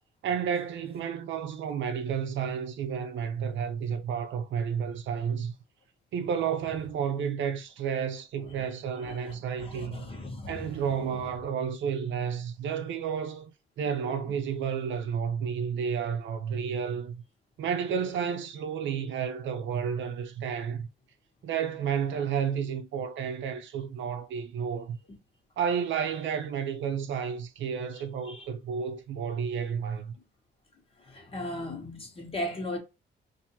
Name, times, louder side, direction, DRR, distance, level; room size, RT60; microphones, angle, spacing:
voice 1, 0.2-5.5 6.1-10.0 10.5-17.2 17.6-20.9 21.4-25.0 25.6-30.1, right 7 dB, 70° right, 0.6 m, -31 dB
voice 2, 8.9-10.8 27.9-28.5 31.0-32.8, left 1 dB, 30° left, 1.2 m, -38 dB
4.1 x 2.6 x 2.9 m
cardioid pair, 90°, 20 cm